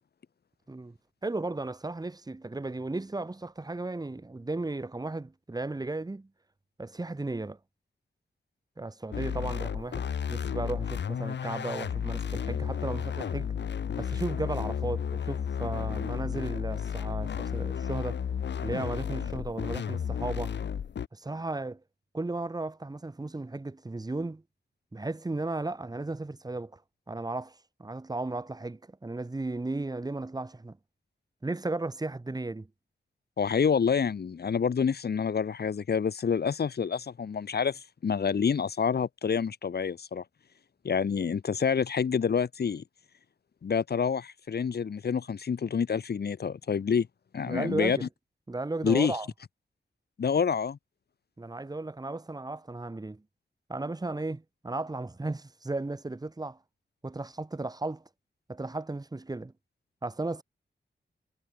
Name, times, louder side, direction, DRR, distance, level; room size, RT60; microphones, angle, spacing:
voice 1, 1.2-6.3 6.8-7.6 8.8-13.5 14.0-18.2 18.6-20.6 21.1-21.8 22.1-24.4 24.9-26.8 27.1-30.8 31.4-32.7 47.5-48.1 48.5-49.3 51.4-53.2 53.7-56.6 57.0-58.0 58.5-59.5 60.0-60.4, right 2 dB, 20° right, 3.5 m, -35 dB
sound 1, 9.1-21.1, left 8 dB, 80° left, 1.4 m, -33 dB
voice 2, 33.4-40.2 40.8-42.8 43.6-47.1 47.3-48.1 48.8-49.1 50.2-50.8, left 6 dB, 65° left, 2.2 m, -27 dB
wide cardioid pair, 125°, 18 cm